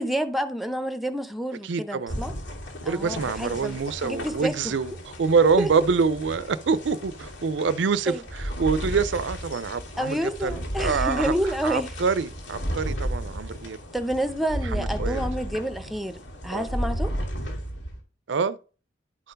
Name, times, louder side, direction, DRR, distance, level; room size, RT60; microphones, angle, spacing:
voice 1, 0.0-2.3 2.8-4.8 5.6-5.7 8.1-8.2 10.0-11.9 13.9-16.2 16.4-17.1, equal, ahead, 0.7 m, -29 dB
voice 2, 1.6-2.2 2.8-4.9 5.2-11.3 11.6-13.8 14.7-15.2 16.5-16.7 18.3-18.6, right 5 dB, 75° right, 0.5 m, -25 dB
sound 1, 2.1-18.0, equal, 80° left, 2.7 m, -34 dB
11.0 x 4.5 x 5.1 m
head